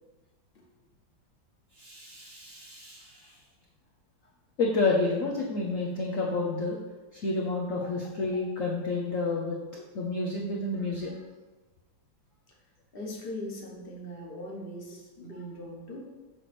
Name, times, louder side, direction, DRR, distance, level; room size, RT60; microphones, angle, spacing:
voice 1, 1.7-3.4 4.6-6.8 7.1-11.2, left 3 dB, 90° left, -2 dB, 0.7 m, -30 dB
voice 2, 12.9-16.0, left 1 dB, 35° left, -2 dB, 1.0 m, -40 dB
6.9 x 3.1 x 5.8 m, 1.2 s
omnidirectional pair, 2.4 m